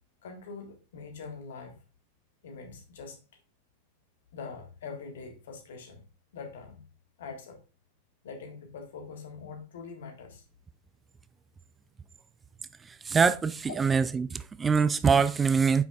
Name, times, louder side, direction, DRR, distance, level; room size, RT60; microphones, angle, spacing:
voice 1, 0.2-1.8 2.4-3.2 4.3-6.0 6.3-6.8 7.2-7.6 8.2-10.4 13.6-13.8, left 5 dB, 60° left, 1.6 m, -43 dB
voice 2, 12.9-15.8, right 5 dB, 15° right, 0.3 m, -24 dB
8.8 x 5.8 x 2.4 m
figure-of-eight pair, 90°, 0 cm